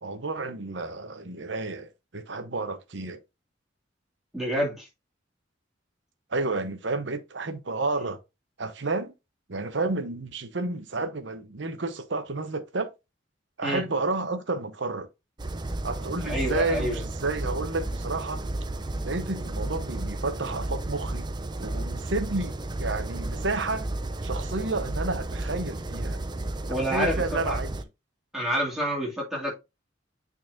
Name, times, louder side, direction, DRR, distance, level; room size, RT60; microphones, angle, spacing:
voice 1, 0.0-3.2 6.3-8.2 8.6-9.1 9.5-12.9 13.6-15.1 15.8-18.4 19.0-21.3 21.6-23.9 24.2-26.2 26.8-27.8, right 3 dB, 70° right, 0.9 m, -31 dB
voice 2, 4.3-4.9 13.6-13.8 16.2-17.0 26.7-27.6 28.3-29.5, equal, ahead, 2.4 m, -28 dB
sound 1, 15.4-27.8, right 2 dB, 25° right, 0.5 m, -33 dB
8.9 x 4.0 x 2.6 m
head